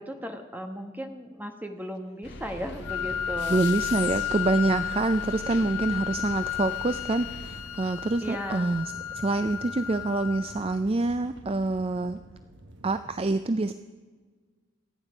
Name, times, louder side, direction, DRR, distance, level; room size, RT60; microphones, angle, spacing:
voice 1, 0.0-3.6 8.2-8.7, equal, 10° right, 5 dB, 1.3 m, -36 dB
sound 1, 2.2-7.6, left 2 dB, 50° left, 1.7 m, -41 dB
sound 2, 2.5-13.1, right 1 dB, 55° right, 1.4 m, -48 dB
Wind instrument woodwind instrument, 2.8-10.8, left 10 dB, 75° left, 0.6 m, -33 dB
voice 2, 3.5-12.2 12.8-13.7, right 2 dB, 25° right, 11 dB, 0.4 m, -26 dB
26.0 x 9.2 x 5.1 m, 1.5 s
head